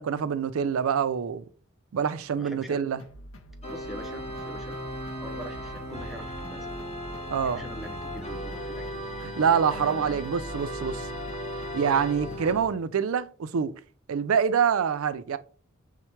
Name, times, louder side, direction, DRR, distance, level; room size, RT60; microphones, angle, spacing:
voice 1, 0.0-1.4 1.9-3.0 7.3-7.6 9.2-11.1 11.7-13.7 14.1-15.4, right 7 dB, 75° right, 0.4 m, -26 dB
voice 2, 2.4-2.8 3.7-4.8 5.2-6.8 7.2-9.0 9.7-10.2, equal, ahead, 0.6 m, -43 dB
sound 1, 3.0-12.7, equal, 80° left, 0.6 m, -46 dB
Organ, 3.6-12.7, equal, 30° left, 1.2 m, -36 dB
5.6 x 2.1 x 4.4 m
head